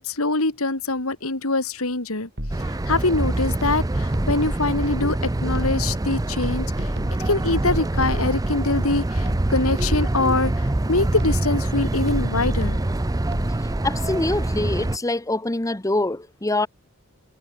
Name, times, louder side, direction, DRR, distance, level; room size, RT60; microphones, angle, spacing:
voice 1, 0.0-2.3 2.6-6.9 7.2-12.8, left 2 dB, 70° left, 3.0 m, -24 dB
sound 1, 2.4-2.9 3.6-4.7 5.5-6.1 6.4-8.6 9.3-10.3 11.2-11.7 12.1-13.6, equal, 50° right, 6.4 m, -32 dB
sound 2, 2.5-15.0, right 1 dB, 15° right, 0.5 m, -25 dB
voice 2, 13.8-16.7, left 2 dB, 15° left, 0.9 m, -24 dB
head